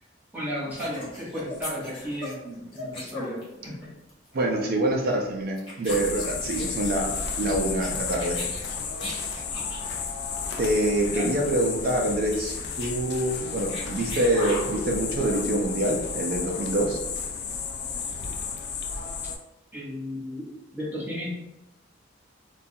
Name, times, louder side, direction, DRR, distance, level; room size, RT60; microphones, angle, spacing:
voice 1, 0.3-3.4 11.1-11.3 19.7-20.4 20.7-21.3, equal, 10° right, -7 dB, 0.9 m, -34 dB
sound 1, 0.7-3.8 4.1-4.4 5.1-5.3 5.6-9.9 10.2-10.4 10.6-10.7 10.9-11.2 11.4-11.5 12.0-14.8, left 2 dB, 25° left, 0.8 m, -39 dB
voice 2, 4.3-8.4 10.6-17.0, right 1 dB, 50° right, 1 dB, 0.4 m, -26 dB
sound 2, 5.9-19.4, left 5 dB, 60° left, 0.3 m, -32 dB
2.3 x 2.2 x 2.6 m, 0.95 s
head